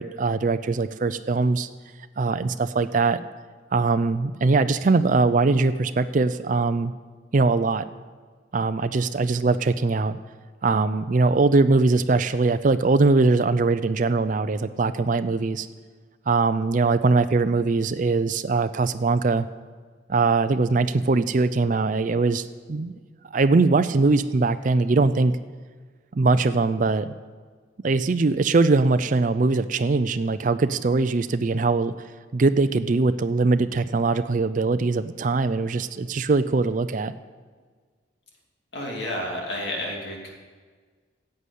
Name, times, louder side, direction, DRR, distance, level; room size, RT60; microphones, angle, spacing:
voice 1, 0.0-1.7 2.2-3.2 3.7-6.9 7.3-7.8 8.5-10.2 10.6-15.7 16.3-19.5 20.1-22.9 23.3-25.4 26.1-27.1 27.8-31.9 32.3-37.1, right 3 dB, 45° right, 11 dB, 0.4 m, -21 dB
voice 2, 38.7-40.3, left 1 dB, 60° left, -1 dB, 2.6 m, -30 dB
11.0 x 7.8 x 8.3 m, 1.5 s
head